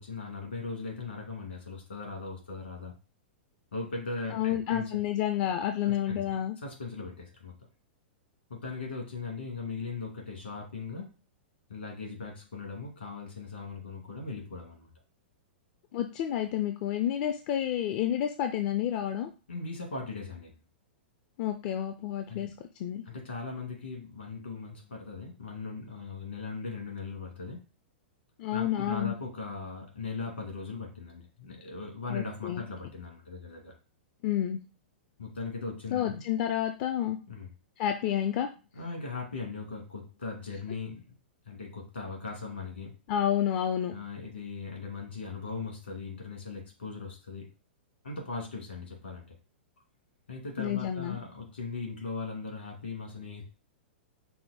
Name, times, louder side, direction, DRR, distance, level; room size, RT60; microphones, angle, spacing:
voice 1, 0.0-2.9 3.7-5.0 6.1-6.2 6.6-7.5 8.5-11.1 11.7-14.9 19.5-20.5 22.3-22.5 23.1-27.7 28.5-33.7 35.2-36.2 37.3-37.5 38.7-41.1 41.5-42.9 43.9-47.5 48.0-49.4 50.3-53.4, left 4 dB, 75° left, 0 dB, 2.3 m, -39 dB
voice 2, 4.3-6.6 15.9-19.3 21.4-22.5 22.8-23.0 28.4-29.1 32.1-32.6 34.2-34.6 35.9-37.2 37.8-38.5 43.1-43.9 50.6-51.2, left 11 dB, 45° left, 6 dB, 0.5 m, -29 dB
5.6 x 2.1 x 4.2 m, 0.32 s
figure-of-eight pair, 105°, 6 cm